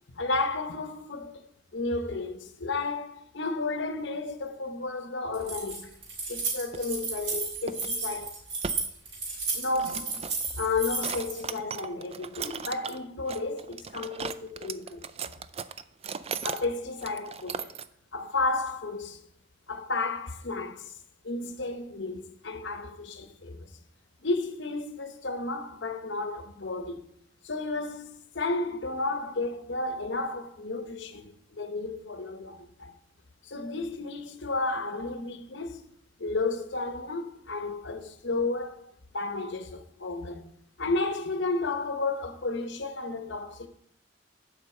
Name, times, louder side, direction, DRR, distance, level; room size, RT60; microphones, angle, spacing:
voice 1, 0.1-6.0 6.3-8.4 9.5-10.2 10.6-15.0 16.4-17.7 18.1-19.2 19.7-20.9 21.2-23.7 24.2-27.1 27.4-32.9 33.4-35.9 36.2-38.9 39.1-40.5 40.8-43.7, left 3 dB, 65° left, 0.9 m, -32 dB
Keys jangling, 5.3-11.4, right 4 dB, 85° right, 3.5 m, -33 dB
sound 1, 6.7-7.0 7.7-7.9 8.2-8.3 8.6-8.8 9.5-10.5 11.0-13.0 13.3-16.6 17.0-17.9, right 6 dB, 30° right, 0.4 m, -37 dB
8.1 x 5.1 x 7.3 m
head